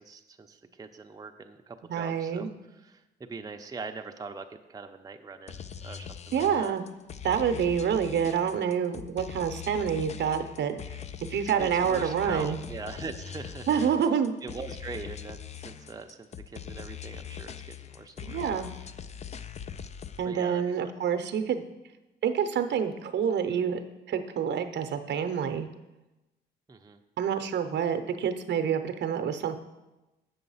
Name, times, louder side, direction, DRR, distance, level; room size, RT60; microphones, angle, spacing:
voice 1, 0.0-6.7 11.6-13.7 14.0-14.1 14.4-18.5 20.2-20.9 26.7-27.0, right 4 dB, 20° right, 4 dB, 0.5 m, -42 dB
voice 2, 1.9-2.5 6.3-6.8 7.2-10.8 11.3-12.6 13.7-14.3 18.2-18.7 20.2-21.6 22.2-23.8 24.1-25.7 27.2-29.6, right 7 dB, 60° right, 9 dB, 0.7 m, -27 dB
sound 1, 5.5-20.2, left 8 dB, 35° left, 0.4 m, -42 dB
7.7 x 5.7 x 5.6 m, 1.0 s
cardioid pair, 90°, 20 cm